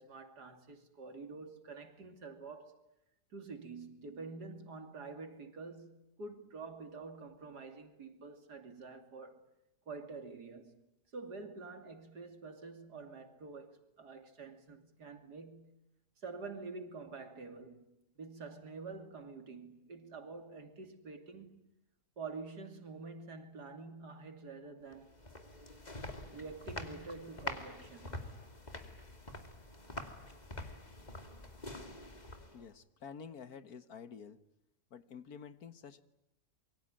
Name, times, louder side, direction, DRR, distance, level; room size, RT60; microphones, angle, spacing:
voice 1, 0.0-2.8 3.3-9.5 9.9-10.8 11.1-15.8 16.2-17.9 18.2-21.6 22.2-25.1 26.3-28.3, right 4 dB, 90° right, 3.4 m, -47 dB
sound 1, 24.9-32.7, left 1 dB, 25° left, 2.5 m, -46 dB
voice 2, 32.5-34.4 34.9-36.0, left 6 dB, 70° left, 1.8 m, -49 dB
26.5 x 23.5 x 8.9 m
omnidirectional pair, 1.7 m